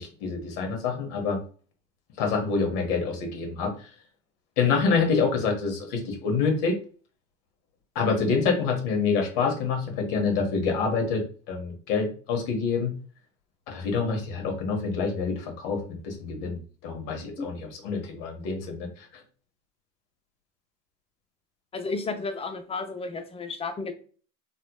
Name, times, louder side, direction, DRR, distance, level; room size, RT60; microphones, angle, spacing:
voice 1, 0.0-1.4 2.2-3.9 4.6-6.8 7.9-12.9 13.7-15.8 16.0-18.9, left 5 dB, 65° left, 2 dB, 1.3 m, -27 dB
voice 2, 21.7-23.9, left 3 dB, 15° left, 7 dB, 0.5 m, -32 dB
3.3 x 2.9 x 2.2 m, 0.40 s
hypercardioid pair, 90°, 37 cm